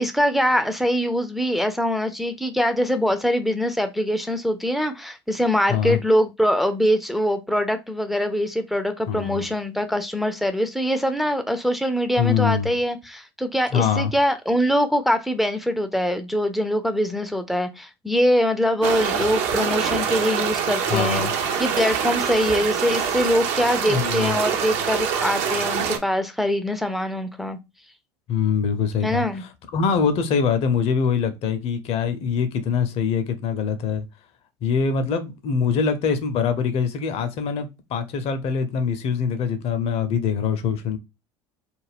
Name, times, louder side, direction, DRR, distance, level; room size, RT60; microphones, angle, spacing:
voice 1, 0.0-27.6 29.0-29.4, equal, ahead, 0.4 m, -23 dB
voice 2, 9.1-9.5 12.2-12.7 13.7-14.1 20.9-21.3 23.9-24.3 28.3-29.2 29.7-34.0 34.6-41.0, left 6 dB, 45° left, 0.6 m, -23 dB
sound 1, 18.8-26.0, right 7 dB, 55° right, 0.6 m, -25 dB
2.4 x 2.1 x 3.3 m
hypercardioid pair, 75°, 14 cm